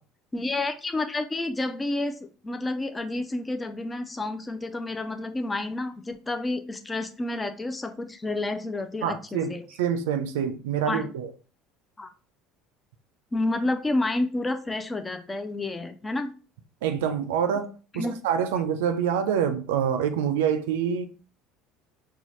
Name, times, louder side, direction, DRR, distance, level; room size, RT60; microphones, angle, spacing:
voice 1, 0.3-2.2 2.4-9.6 10.8-11.0 12.0-12.1 13.3-16.3 17.9-18.2, left 2 dB, 20° left, 0.4 m, -29 dB
voice 2, 9.0-9.5 9.8-11.3 16.8-21.1, right 8 dB, 85° right, 0.4 m, -26 dB
4.0 x 2.3 x 3.0 m
supercardioid pair, 85°, 0 cm